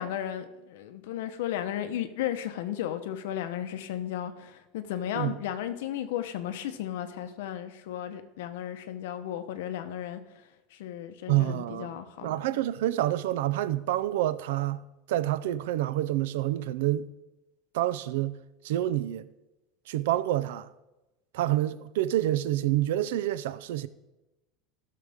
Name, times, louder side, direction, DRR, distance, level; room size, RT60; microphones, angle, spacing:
voice 1, 0.0-12.3, left 11 dB, 75° left, 0.9 m, -34 dB
voice 2, 11.3-14.8 15.1-17.1 17.7-18.4 18.6-19.3 19.9-20.7 21.3-23.9, right 14 dB, 80° right, 0.5 m, -28 dB
16.0 x 6.7 x 3.6 m
supercardioid pair, 170°, 0 cm